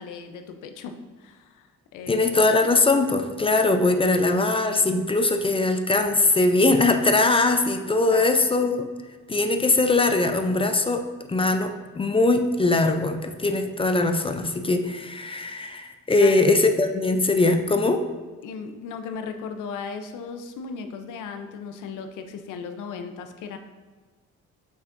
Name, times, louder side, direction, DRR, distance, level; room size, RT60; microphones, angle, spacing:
voice 1, 0.0-1.6 1.9-2.5 8.1-8.6 9.7-9.8 16.1-16.5 18.4-23.6, left 5 dB, 85° left, 7 dB, 0.7 m, -36 dB
voice 2, 2.1-8.9 9.3-11.0 11.3-18.0, left 2 dB, 20° left, 7 dB, 0.5 m, -21 dB
6.5 x 5.8 x 2.6 m, 1.4 s
cardioid pair, 90°, 30 cm